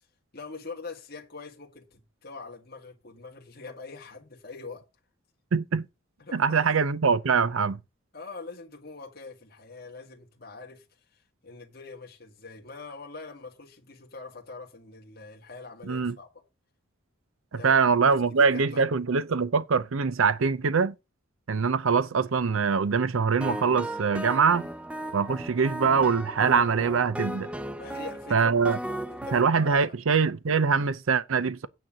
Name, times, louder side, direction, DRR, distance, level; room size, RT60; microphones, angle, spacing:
voice 1, 0.3-4.9 6.2-6.7 8.1-10.9 11.1-16.3 17.5-17.8 18.1-18.9 27.7-29.9, left 4 dB, 45° left, 2.0 m, -44 dB
voice 2, 5.5-5.8 6.3-7.8 15.9-16.1 17.5-20.9 21.5-24.7 25.1-27.5 28.3-28.8 29.3-31.7, right 5 dB, 75° right, 0.6 m, -23 dB
sound 1, 23.4-29.4, right 1 dB, 5° right, 0.4 m, -36 dB
9.3 x 4.3 x 7.4 m
head